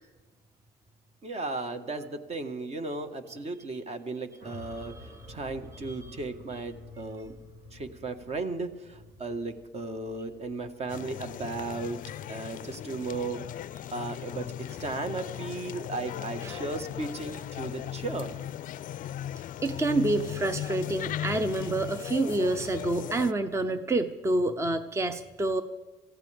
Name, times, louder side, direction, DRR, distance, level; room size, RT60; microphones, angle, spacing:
voice 1, 1.2-4.9 5.3-7.3 7.7-12.0 12.3-13.4 13.9-18.4, right 3 dB, 40° right, 8 dB, 1.5 m, -35 dB
sound 1, 4.4-12.7, left 2 dB, 75° right, 3.5 m, -50 dB
sound 2, 10.9-23.3, left 11 dB, 50° left, 0.4 m, -37 dB
voice 2, 19.6-25.6, right 2 dB, 15° right, 10 dB, 0.7 m, -28 dB
25.0 x 15.5 x 3.5 m, 1.4 s
cardioid pair, 110°, 17 cm